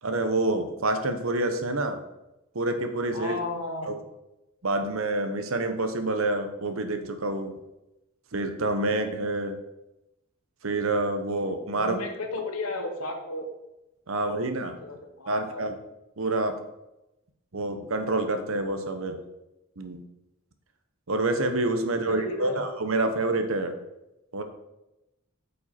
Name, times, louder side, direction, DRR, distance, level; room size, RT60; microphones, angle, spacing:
voice 1, 0.0-2.0 2.5-3.3 3.8-3.9 4.6-7.6 8.3-9.6 10.6-12.0 14.1-14.8 15.3-15.8 16.2-16.6 17.5-19.2 19.8-20.0 21.1-23.8 24.3-24.4, right 2 dB, 70° right, 7 dB, 0.9 m, -27 dB
voice 2, 3.1-3.9 11.7-13.5 14.1-15.7 22.0-22.7, left 2 dB, 85° left, 4 dB, 1.4 m, -34 dB
8.6 x 5.4 x 4.3 m, 0.93 s
head